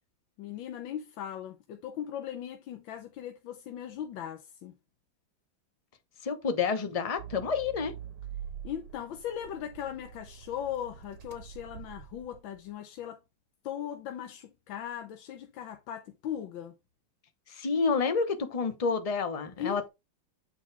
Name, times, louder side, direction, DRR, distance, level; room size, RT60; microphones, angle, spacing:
voice 1, 0.4-4.8 8.6-13.2 13.6-16.7 19.6-19.9, left 10 dB, 90° left, 1.6 m, -38 dB
voice 2, 6.2-7.9 17.5-19.9, left 5 dB, 25° left, 0.8 m, -29 dB
Accelerating revving vroom, 7.2-12.6, right 9 dB, 70° right, 1.7 m, -45 dB
8.5 x 4.7 x 3.4 m
omnidirectional pair, 2.1 m